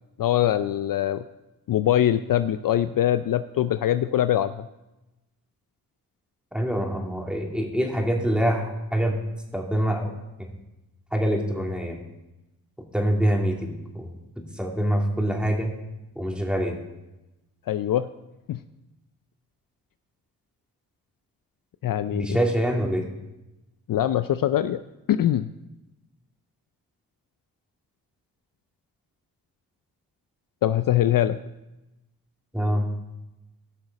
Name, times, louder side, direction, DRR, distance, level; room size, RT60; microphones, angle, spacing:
voice 1, 0.2-1.2 1.7-4.7 17.7-18.1 18.5-18.6 21.8-22.4 23.9-24.8 25.1-25.5 30.6-31.4, left 11 dB, 60° left, 12 dB, 0.5 m, -23 dB
voice 2, 6.5-9.1 9.5-10.1 11.1-12.0 12.9-14.1 14.6-15.7 16.2-16.7 22.1-23.1 32.5-32.9, equal, ahead, 0 dB, 2.8 m, -25 dB
17.0 x 6.4 x 4.1 m, 0.98 s
supercardioid pair, 50°, 39 cm